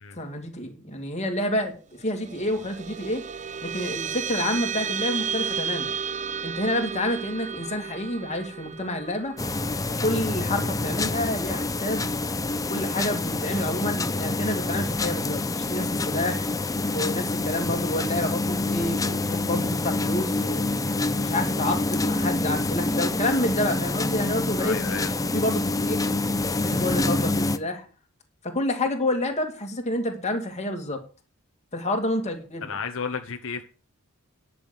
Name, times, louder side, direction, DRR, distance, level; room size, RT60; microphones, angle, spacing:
voice 1, 0.2-1.7 2.0-3.2 3.6-6.0 6.4-9.4 9.8-12.1 12.7-16.5 16.9-20.7 21.2-24.8 25.3-26.1 26.6-27.8 28.4-31.0 31.7-32.7, left 1 dB, 30° left, 2.4 m, -28 dB
sound 1, 2.0-12.7, right 7 dB, 35° right, 0.7 m, -34 dB
sound 2, 9.4-27.6, left 2 dB, 15° left, 0.7 m, -27 dB
voice 2, 24.6-25.1 32.6-33.6, left 5 dB, 65° left, 1.0 m, -32 dB
10.5 x 6.2 x 7.9 m
head